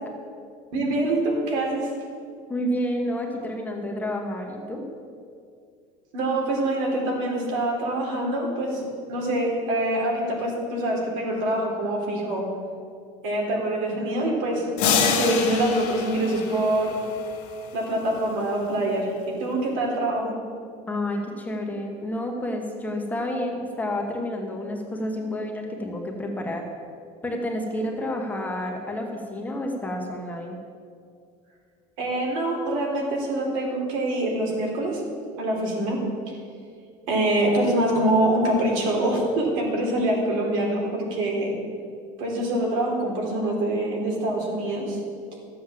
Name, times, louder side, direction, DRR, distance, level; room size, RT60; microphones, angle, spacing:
voice 1, 0.7-1.9 6.1-8.8 9.1-12.5 13.2-14.7 15.0-17.0 17.7-20.3 32.0-35.0 35.4-36.0 37.1-41.6 42.2-45.0, right 1 dB, 80° right, -1 dB, 3.5 m, -25 dB
voice 2, 2.5-4.8 20.9-26.6 27.2-30.6, left 1 dB, 10° left, 1 dB, 1.2 m, -29 dB
sound 1, 14.8-17.3, left 6 dB, 55° left, 2.1 m, -26 dB
13.0 x 7.7 x 7.5 m, 2.3 s
cardioid pair, 170°, 16 cm